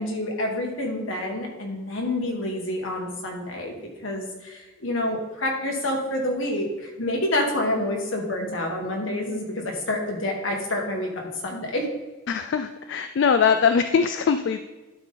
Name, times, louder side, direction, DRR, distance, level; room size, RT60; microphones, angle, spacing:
voice 1, 0.0-3.7 4.0-11.8, left 1 dB, 85° left, 0 dB, 1.7 m, -28 dB
voice 2, 12.3-14.6, left 6 dB, 65° left, 9 dB, 0.3 m, -21 dB
11.5 x 4.1 x 3.7 m, 1.2 s
head